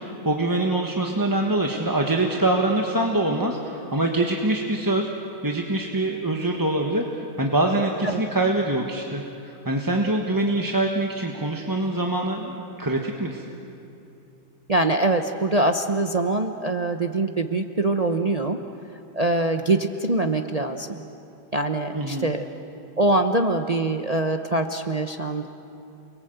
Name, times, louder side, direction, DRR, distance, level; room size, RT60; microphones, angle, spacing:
voice 1, 0.0-5.1 5.4-7.0 7.4-13.4 21.9-22.3, right 2 dB, 10° right, 1 dB, 1.2 m, -24 dB
voice 2, 14.7-18.6 19.1-21.0 21.5-22.5 23.0-25.5, right 2 dB, 45° right, 6 dB, 0.5 m, -23 dB
29.5 x 22.0 x 8.0 m, 2.7 s
omnidirectional pair, 2.0 m